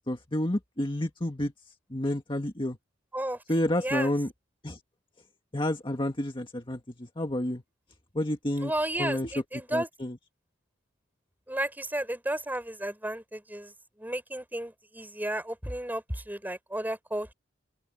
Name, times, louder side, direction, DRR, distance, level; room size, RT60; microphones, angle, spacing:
voice 1, 0.0-1.5 1.9-2.8 3.5-4.3 4.6-4.8 5.5-7.6 8.2-8.7 9.0-9.3 9.7-10.2, left 1 dB, 25° left, 1.8 m, -30 dB
voice 2, 3.1-3.4 3.8-4.1 8.6-9.9 11.5-13.7 14.0-17.3, right 1 dB, 10° right, 5.4 m, -33 dB
open air
head